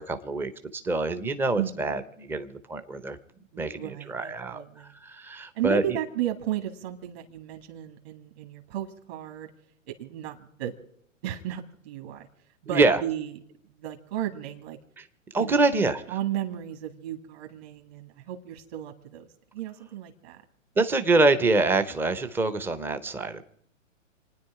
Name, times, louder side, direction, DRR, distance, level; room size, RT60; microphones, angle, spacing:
voice 1, 0.0-3.2 3.6-4.6 5.0-6.0 12.7-13.0 15.0-15.1 15.3-16.0 20.8-23.4, right 3 dB, 5° right, 10 dB, 0.5 m, -25 dB
voice 2, 1.6-1.9 3.5-4.9 5.5-9.5 9.9-10.7 11.2-12.3 12.6-13.4 13.7-14.8 15.3-20.4, right 12 dB, 50° right, 4 dB, 1.8 m, -34 dB
28.5 x 9.7 x 4.7 m, 0.68 s
hypercardioid pair, 120°, 40 cm